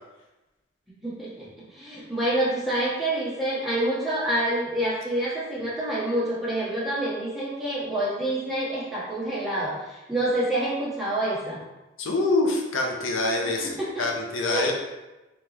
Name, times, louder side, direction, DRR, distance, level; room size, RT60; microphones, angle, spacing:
voice 1, 1.0-11.6 13.6-14.1 14.4-14.7, right 1 dB, ahead, -9 dB, 1.3 m, -27 dB
voice 2, 12.0-14.7, left 2 dB, 80° left, 1 dB, 0.7 m, -25 dB
3.7 x 3.5 x 3.0 m, 1.1 s
head